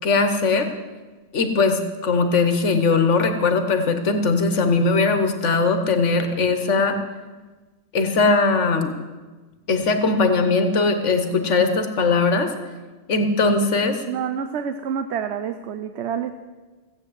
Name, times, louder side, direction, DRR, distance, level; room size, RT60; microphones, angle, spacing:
voice 1, 0.0-0.7 1.3-7.0 7.9-8.9 9.7-12.5 13.1-14.0, left 3 dB, 85° left, 7 dB, 1.5 m, -20 dB
voice 2, 14.0-16.3, right 7 dB, 70° right, 9 dB, 1.0 m, -28 dB
16.0 x 8.6 x 7.9 m, 1.3 s
omnidirectional pair, 1.2 m